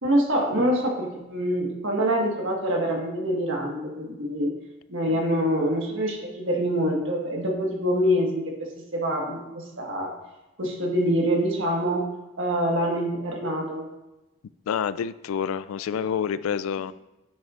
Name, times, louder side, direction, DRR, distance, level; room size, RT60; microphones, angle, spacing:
voice 1, 0.0-4.5 4.9-10.1 10.6-12.1 12.4-13.9 16.0-16.1, equal, 65° right, 0 dB, 1.6 m, -25 dB
voice 2, 14.7-16.9, left 7 dB, 85° left, 16 dB, 0.3 m, -28 dB
9.1 x 7.7 x 2.5 m, 1.0 s
head